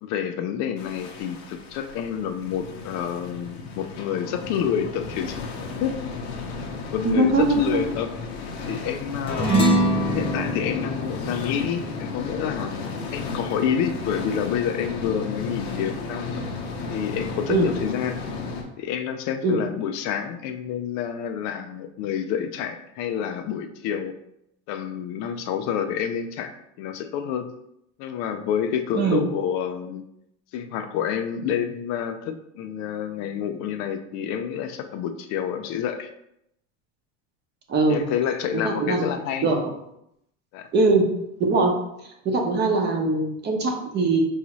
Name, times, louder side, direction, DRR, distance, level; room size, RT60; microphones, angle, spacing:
voice 1, 0.0-5.4 5.8-6.0 6.9-8.1 8.4-9.6 10.1-12.8 13.1-16.3 16.9-18.2 18.8-24.1 24.7-26.5 26.8-27.5 28.0-30.0 30.5-36.1 37.9-39.5 40.5-40.7, left 8 dB, 55° left, 7 dB, 0.4 m, -28 dB
sound 1, 0.8-18.6, left 4 dB, 90° left, 0.9 m, -34 dB
voice 2, 7.0-7.8 17.5-17.7 19.4-19.6 28.9-29.3 37.7-38.0 38.5-39.1 39.4-39.7 40.7-41.1 41.4-41.7 42.2-44.2, right 3 dB, 30° right, 2 dB, 0.7 m, -21 dB
sound 2, 9.3-14.0, right 1 dB, 15° left, 0.7 m, -25 dB
4.7 x 2.7 x 3.0 m, 0.79 s
supercardioid pair, 140°, 32 cm